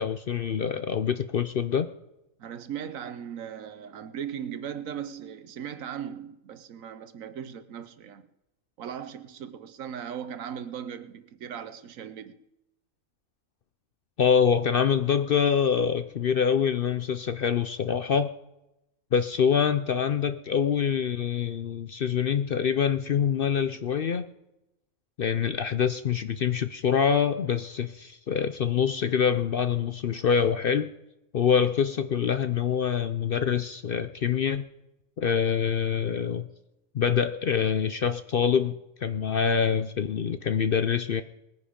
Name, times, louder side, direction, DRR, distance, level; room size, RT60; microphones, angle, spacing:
voice 1, 0.0-1.9 14.2-18.3 19.1-24.3 25.2-30.9 31.3-34.6 35.2-36.5 36.9-41.2, left 7 dB, 55° left, 0.6 m, -25 dB
voice 2, 2.4-8.3 8.8-12.4, right 8 dB, 75° right, 1.3 m, -38 dB
20.5 x 9.8 x 5.1 m
omnidirectional pair, 1.4 m